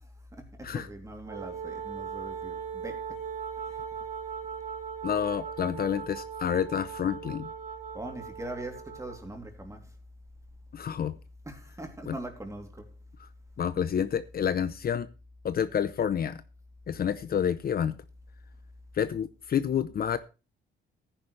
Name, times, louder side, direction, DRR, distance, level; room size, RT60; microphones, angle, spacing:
voice 1, 0.6-3.0 7.9-9.8 11.5-12.8, right 1 dB, 15° right, 3.2 m, -41 dB
Wind instrument woodwind instrument, 1.2-9.3, right 7 dB, 40° right, 2.5 m, -39 dB
voice 2, 5.0-7.5 10.7-11.1 12.1-12.2 13.2-13.3 13.6-15.1 15.4-16.4 16.9-18.0 18.9-20.2, left 8 dB, 50° left, 0.8 m, -29 dB
14.0 x 10.0 x 3.3 m
cardioid pair, 90°, 20 cm